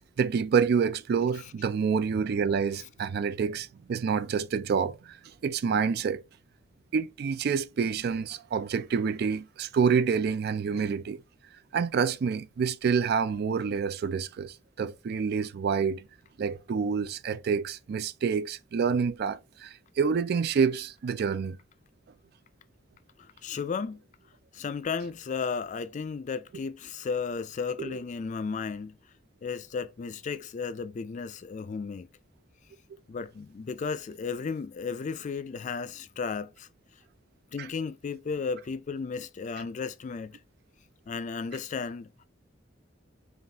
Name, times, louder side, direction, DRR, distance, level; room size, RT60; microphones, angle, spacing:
voice 1, 0.2-6.2 6.9-11.2 11.7-16.1 16.4-21.6 27.8-27.9 37.6-37.7, right 6 dB, 55° right, 0.3 m, -28 dB
voice 2, 23.4-24.0 24.5-29.0 29.4-32.1 33.1-36.7 37.5-40.4 41.1-42.1, left 5 dB, 40° left, 0.3 m, -34 dB
5.4 x 2.4 x 2.8 m
head